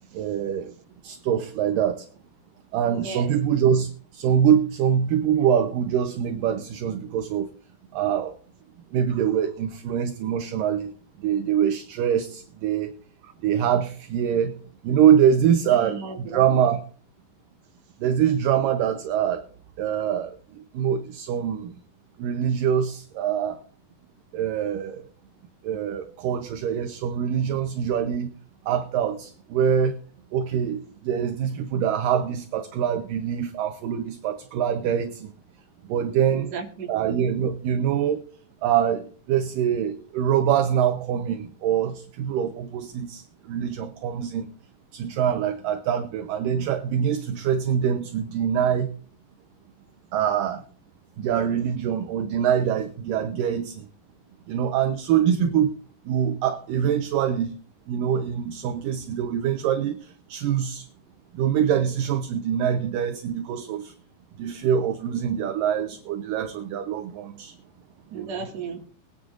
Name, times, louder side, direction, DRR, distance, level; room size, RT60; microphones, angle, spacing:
voice 1, 0.1-0.7 1.0-2.1 2.7-7.5 7.9-8.4 8.9-10.9 11.2-12.9 13.4-14.6 14.8-16.8 18.0-19.4 19.8-21.7 22.2-23.6 24.3-25.1 25.6-28.3 28.7-30.0 30.3-35.3 35.9-36.5 36.9-38.3 38.6-44.5 44.9-48.9 50.1-50.6 51.2-53.9 54.5-55.8 56.1-57.5 57.9-60.9 61.3-63.9 64.4-67.6 68.1-68.5, right 9 dB, 75° right, 2.3 m, -24 dB
voice 2, 15.6-16.4 36.3-36.9 68.1-68.9, right 5 dB, 50° right, 2.7 m, -35 dB
21.5 x 10.0 x 2.5 m
omnidirectional pair, 4.3 m